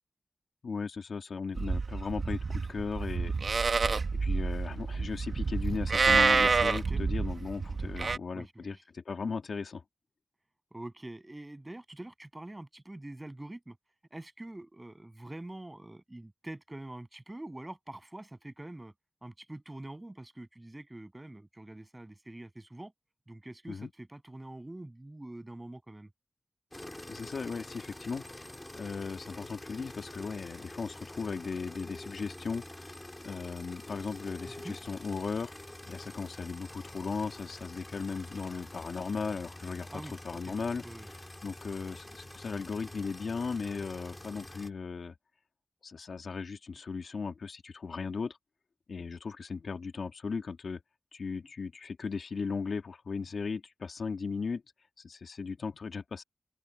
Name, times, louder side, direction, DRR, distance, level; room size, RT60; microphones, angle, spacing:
voice 1, 0.6-9.8 23.7-23.9 27.1-28.2 28.7-33.0 33.2-35.5 35.9-39.9 40.2-40.8 41.4-45.1 45.8-48.4 48.9-50.8 51.1-54.6 55.0-56.2, left 5 dB, 85° left, 2.2 m, -37 dB
Livestock farm animals working animals, 1.6-8.2, right 4 dB, 75° right, 1.9 m, -28 dB
voice 2, 6.7-7.1 8.0-8.8 10.7-13.8 14.1-18.9 19.2-22.9 23.3-26.1 34.6-34.8 39.9-40.5 40.8-41.1, right 1 dB, 25° right, 8.0 m, -45 dB
sound 1, 26.7-44.7, left 1 dB, 25° left, 3.8 m, -46 dB
open air
cardioid pair, 45°, 0 cm